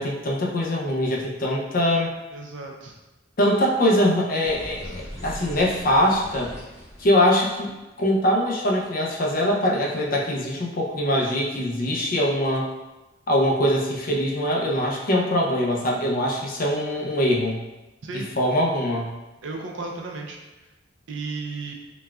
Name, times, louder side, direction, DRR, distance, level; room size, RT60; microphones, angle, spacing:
voice 1, 0.0-2.1 3.4-6.6 7.0-12.7 13.3-17.6 18.1-19.1, left 1 dB, 50° left, -1 dB, 0.5 m, -23 dB
voice 2, 2.3-2.9 18.0-18.3 19.4-20.4 21.1-21.7, right 3 dB, 75° right, 1 dB, 0.5 m, -34 dB
sound 1, 4.4-7.7, equal, 15° left, 0.9 m, -39 dB
4.0 x 2.2 x 2.3 m, 1.1 s
head